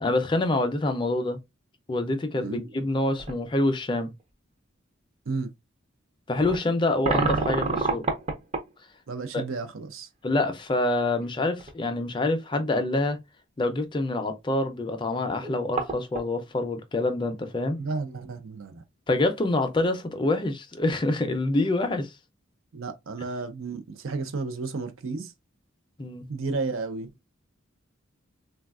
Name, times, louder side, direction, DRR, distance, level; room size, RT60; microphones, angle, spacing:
voice 1, 0.0-1.4 1.9-4.1 6.3-8.0 9.3-9.4 10.2-13.2 13.6-17.8 19.1-22.1 26.0-26.3, left 2 dB, 25° left, 0.4 m, -26 dB
sound 1, 3.2-3.4 4.2-4.3 6.4-8.7 11.2-11.3 11.6-11.7 15.1-15.2 15.4-16.3, right 3 dB, 30° right, 0.5 m, -28 dB
voice 2, 9.1-10.1 17.8-18.8 22.7-25.3 26.3-27.3, right 4 dB, 85° right, 0.5 m, -32 dB
3.4 x 2.3 x 2.3 m
head